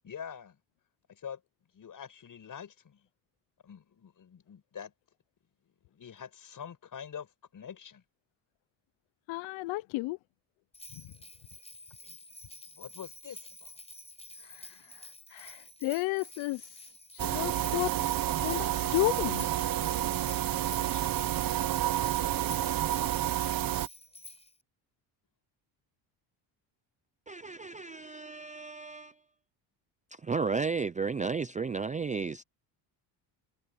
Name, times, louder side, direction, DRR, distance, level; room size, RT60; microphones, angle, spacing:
voice 1, 0.0-0.6 1.1-1.4 1.7-3.1 3.6-4.9 5.6-8.0 12.0-12.2 12.7-13.7 20.9-21.1, left 8 dB, 40° left, 6.7 m, -45 dB
voice 2, 9.3-10.2 14.5-16.7 17.1-17.9 18.4-19.5, left 21 dB, 85° left, 0.7 m, -33 dB
Bell, 10.7-24.6, left 2 dB, 15° left, 6.7 m, -50 dB
sound 1, 17.2-23.9, right 13 dB, 45° right, 1.0 m, -30 dB
voice 3, 27.3-29.1 30.1-32.4, right 5 dB, 15° right, 0.5 m, -33 dB
cardioid pair, 120°, 46 cm